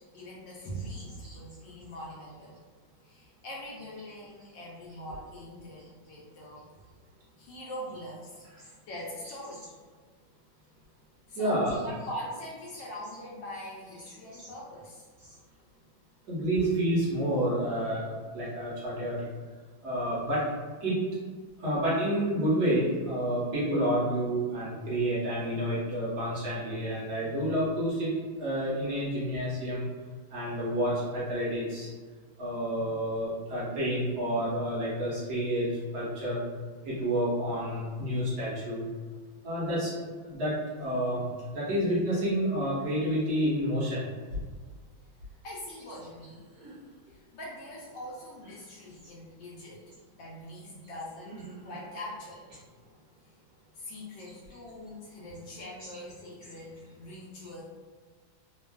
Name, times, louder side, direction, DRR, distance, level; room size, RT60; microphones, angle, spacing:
voice 1, 0.0-2.6 3.0-6.7 7.4-9.7 11.3-15.1 45.4-46.4 47.1-49.8 50.1-52.4 53.7-57.6, equal, 75° left, -4 dB, 1.2 m, -42 dB
voice 2, 11.4-12.0 12.7-12.8 14.4-14.5 16.3-19.2 19.8-20.4 20.8-21.0 21.6-28.1 28.4-29.8 30.3-31.9 32.4-35.7 35.9-36.4 36.8-38.8 39.4-39.9 40.3-40.5 40.8-41.2 41.5-44.0 46.6-46.7 51.3-51.8 55.8-56.0, equal, 60° right, -8 dB, 1.1 m, -29 dB
3.3 x 2.3 x 2.2 m, 1.5 s
omnidirectional pair, 2.3 m